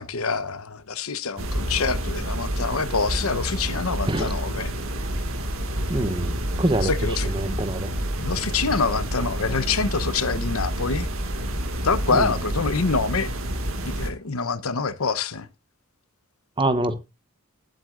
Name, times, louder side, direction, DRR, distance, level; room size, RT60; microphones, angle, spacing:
voice 1, 0.0-4.7 6.8-7.3 8.2-11.1 11.8-13.3 14.0-15.5, left 4 dB, 90° left, 1.0 m, -26 dB
sound 1, 1.4-14.1, right 1 dB, 75° right, 2.0 m, -28 dB
voice 2, 5.9-6.9 7.2-7.9 12.1-12.3 16.6-16.9, right 1 dB, 25° right, 1.0 m, -25 dB
19.5 x 7.8 x 2.5 m
head